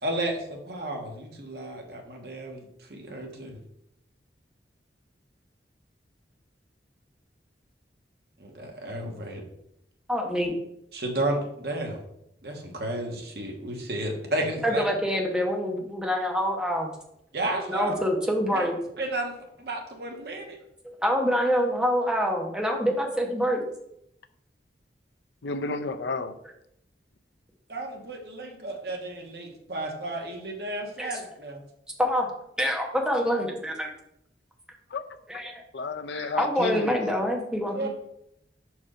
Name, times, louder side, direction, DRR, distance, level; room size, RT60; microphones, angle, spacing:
voice 1, 0.0-3.6 8.4-9.4 10.9-12.0 12.4-14.8 17.3-17.9 18.5-18.7 19.0-19.3 19.6-20.6 27.7-31.6 37.7-37.9, right 1 dB, 60° right, 1.3 m, -32 dB
voice 2, 10.1-10.5 14.6-16.9 17.7-18.8 20.8-23.6 31.0-31.1 32.0-32.3 32.6-33.9 35.3-35.6 36.1-37.9, equal, 5° right, 1.0 m, -26 dB
voice 3, 25.4-26.3 34.9-35.0 35.7-37.2, left 4 dB, 80° left, 0.6 m, -31 dB
5.2 x 4.7 x 4.9 m
head